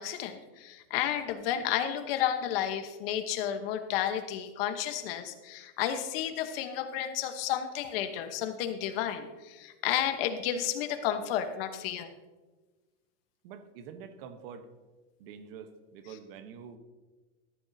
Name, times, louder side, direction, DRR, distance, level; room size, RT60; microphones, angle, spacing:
voice 1, 0.0-12.1, left 10 dB, 60° left, 8 dB, 1.1 m, -32 dB
voice 2, 13.4-14.7 15.2-16.8, right 7 dB, 60° right, 9 dB, 1.1 m, -46 dB
13.5 x 11.5 x 2.7 m, 1.2 s
supercardioid pair, 165°, 33 cm